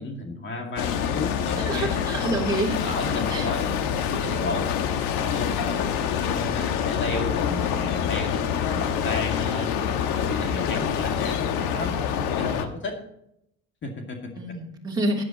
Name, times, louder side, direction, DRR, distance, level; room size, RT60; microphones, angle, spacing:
voice 1, 0.0-1.9 2.8-4.7 5.2-13.0 13.8-14.3, left 2 dB, 40° left, 2 dB, 2.2 m, -33 dB
sound 1, 0.8-12.7, left 8 dB, 80° left, 1.3 m, -26 dB
voice 2, 1.6-2.8 3.3-3.5 14.3-15.2, right 2 dB, 15° right, -4 dB, 3.1 m, -27 dB
15.5 x 9.9 x 3.0 m, 0.77 s
cardioid pair, 105°, 30 cm